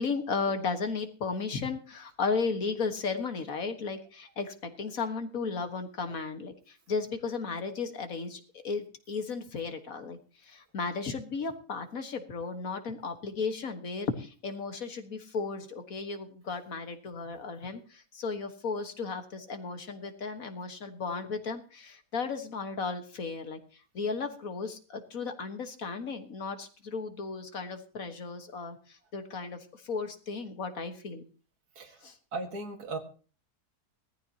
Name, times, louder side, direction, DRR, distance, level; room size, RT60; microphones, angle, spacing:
voice 1, 0.0-31.2 32.0-32.2, left 4 dB, 65° left, 7 dB, 2.0 m, -35 dB
voice 2, 31.8-33.0, right 3 dB, 90° right, 5 dB, 2.4 m, -38 dB
19.0 x 14.0 x 2.9 m, 0.38 s
omnidirectional pair, 1.6 m